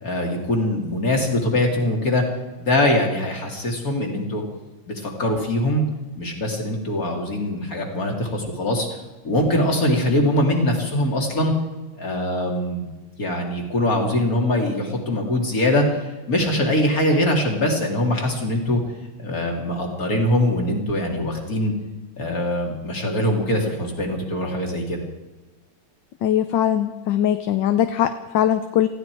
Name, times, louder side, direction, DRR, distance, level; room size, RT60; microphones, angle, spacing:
voice 1, 0.0-2.2 2.6-4.4 4.9-5.8 6.2-8.9 9.2-11.5 12.0-12.9 13.2-16.0 16.3-18.8 19.2-21.7 22.2-25.0, left 1 dB, 40° left, 1 dB, 3.2 m, -22 dB
voice 2, 26.2-28.9, left 10 dB, 70° left, 9 dB, 1.4 m, -21 dB
19.5 x 15.5 x 4.7 m, 1.2 s
omnidirectional pair, 2.3 m